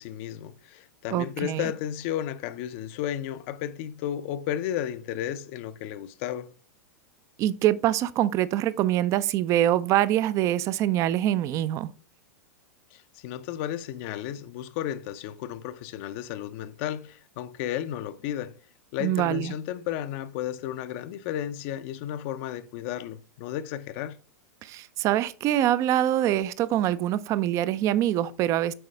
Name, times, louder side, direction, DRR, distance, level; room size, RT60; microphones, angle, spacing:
voice 1, 0.0-6.5 12.9-18.6 18.9-24.2, left 11 dB, 50° left, 0.6 m, -33 dB
voice 2, 1.1-1.7 7.4-11.9 19.0-19.5 24.6-28.7, right 12 dB, 35° right, 0.5 m, -24 dB
7.7 x 4.8 x 3.3 m
hypercardioid pair, 105°, 9 cm